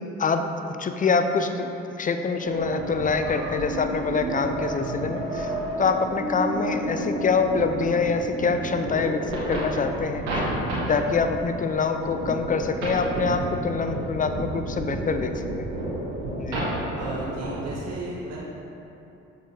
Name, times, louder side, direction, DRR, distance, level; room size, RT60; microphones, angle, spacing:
voice 1, 0.8-1.7 2.0-5.5 5.8-10.2 10.9-15.7 16.4-16.7, left 4 dB, 25° left, 7 dB, 0.5 m, -25 dB
sound 1, 2.4-17.8, right 1 dB, 90° right, 1.3 m, -31 dB
voice 2, 17.0-18.4, right 1 dB, 55° right, -5 dB, 1.4 m, -34 dB
6.5 x 4.0 x 4.1 m, 2.8 s
hypercardioid pair, 55°, 31 cm